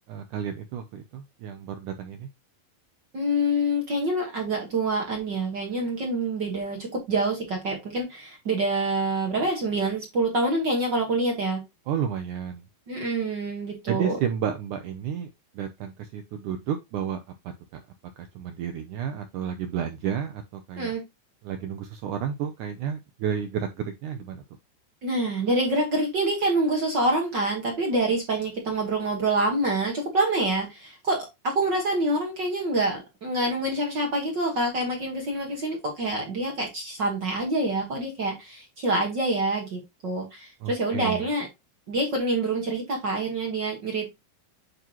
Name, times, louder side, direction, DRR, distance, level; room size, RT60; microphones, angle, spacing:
voice 1, 0.1-2.3 11.9-12.6 13.9-15.3 15.5-17.2 18.2-20.9 21.4-24.4 40.6-41.2, right 8 dB, 80° right, 1.8 m, -31 dB
voice 2, 3.1-11.6 12.9-14.2 20.8-21.0 25.0-41.5 41.9-44.1, right 1 dB, 55° right, 1.2 m, -26 dB
9.3 x 3.8 x 3.0 m
omnidirectional pair, 4.5 m